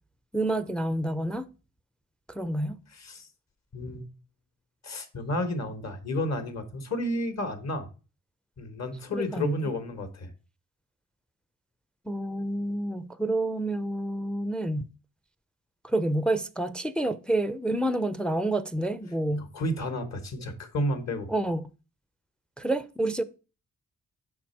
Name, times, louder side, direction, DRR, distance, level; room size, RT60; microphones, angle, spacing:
voice 1, 0.3-1.5 2.3-2.8 9.1-9.6 12.1-14.9 15.8-19.5 21.3-21.7 22.6-23.2, right 1 dB, 5° left, 0.4 m, -28 dB
voice 2, 2.9-3.3 3.7-4.1 4.8-7.9 8.6-10.3 19.4-21.3, left 1 dB, 55° left, 1.3 m, -31 dB
5.9 x 4.4 x 4.3 m
cardioid pair, 110°, 32 cm